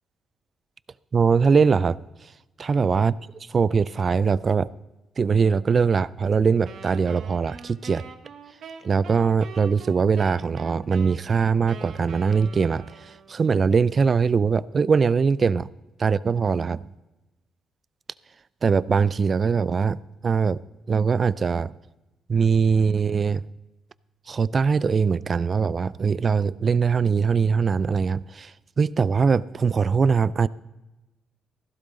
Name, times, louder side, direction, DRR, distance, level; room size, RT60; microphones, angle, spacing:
voice 1, 1.1-2.0 2.6-3.2 3.5-4.7 5.2-8.0 8.8-15.7 16.0-16.8 18.6-20.6 20.9-21.7 22.3-23.4 24.3-30.5, right 5 dB, 40° right, 0.4 m, -22 dB
Wind instrument woodwind instrument, 6.6-13.5, right 6 dB, 65° right, 1.1 m, -44 dB
15.5 x 12.0 x 3.8 m
cardioid pair, 90°, 0 cm